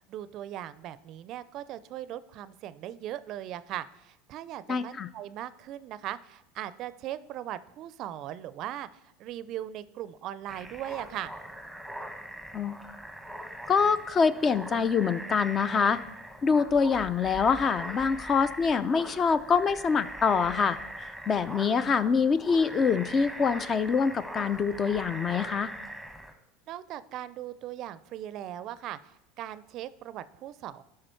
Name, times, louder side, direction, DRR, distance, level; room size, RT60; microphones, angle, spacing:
voice 1, 0.0-8.9 9.2-11.3 26.7-30.8, right 12 dB, 55° right, 16 dB, 0.4 m, -39 dB
voice 2, 4.7-5.1 12.5-12.8 13.7-16.0 16.4-25.7, left 5 dB, 35° left, 15 dB, 0.5 m, -25 dB
sound 1, 10.5-26.3, equal, 5° left, 1.0 m, -41 dB
12.5 x 4.9 x 4.5 m, 0.94 s
hypercardioid pair, 90°, 0 cm